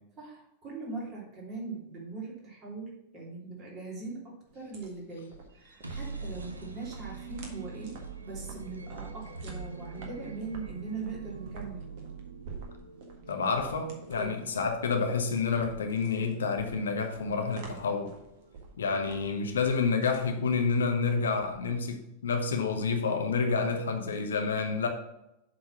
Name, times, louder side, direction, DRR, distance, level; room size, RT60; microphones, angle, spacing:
voice 1, 0.2-11.8 14.2-14.5, right 4 dB, 30° right, -3 dB, 3.1 m, -41 dB
sound 1, 4.5-21.9, right 4 dB, 50° right, 1.7 m, -49 dB
sound 2, 5.5-19.4, right 4 dB, 80° right, 0.7 m, -45 dB
voice 2, 13.3-18.1 18.8-24.9, left 5 dB, 65° left, 4 dB, 1.0 m, -29 dB
7.6 x 4.1 x 6.1 m, 0.86 s
figure-of-eight pair, 90°, 0 cm